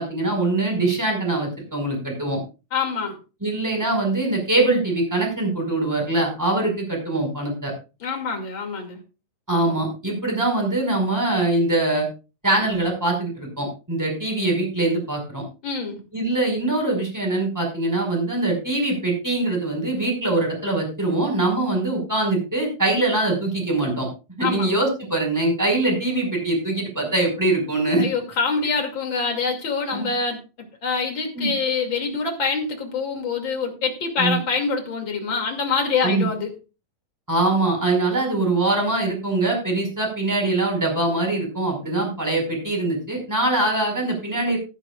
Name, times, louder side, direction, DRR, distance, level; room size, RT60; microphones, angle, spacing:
voice 1, 0.0-2.4 3.4-7.7 9.5-12.1 12.4-15.4 16.1-24.1 24.4-28.0 29.9-30.1 31.3-31.5 34.2-34.4 36.0-36.3 37.3-44.6, right 2 dB, 5° right, 1 dB, 4.9 m, -23 dB
voice 2, 2.7-3.2 8.0-9.0 15.6-16.0 24.4-24.7 28.0-30.4 30.8-36.5, left 5 dB, 35° left, 3 dB, 2.9 m, -25 dB
14.5 x 14.0 x 2.4 m, 0.31 s
omnidirectional pair, 4.1 m